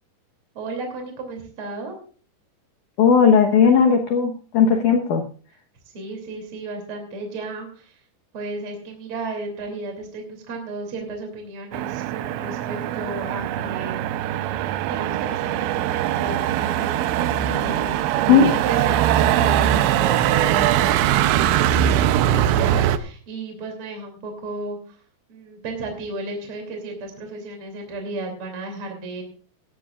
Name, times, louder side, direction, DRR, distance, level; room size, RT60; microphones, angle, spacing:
voice 1, 0.5-2.0 5.9-8.0 8.3-14.5 14.9-25.0 25.3-29.2, right 3 dB, 35° right, 2 dB, 3.2 m, -34 dB
voice 2, 3.0-5.2 18.3-18.5, left 6 dB, 70° left, 4 dB, 2.0 m, -16 dB
Motor vehicle (road), 11.7-23.0, right 11 dB, 90° right, 3.1 m, -21 dB
17.5 x 14.5 x 2.4 m, 0.41 s
omnidirectional pair, 5.1 m